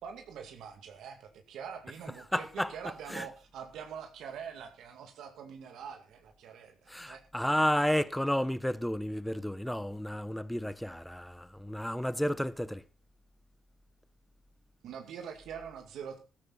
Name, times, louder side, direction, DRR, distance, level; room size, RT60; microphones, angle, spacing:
voice 1, 0.0-7.2 14.8-16.2, right 7 dB, 80° right, 2.3 m, -44 dB
voice 2, 2.3-2.7 3.1-3.3 6.9-12.8, equal, 5° left, 0.8 m, -31 dB
15.0 x 13.0 x 4.1 m
cardioid pair, 90°, 0 cm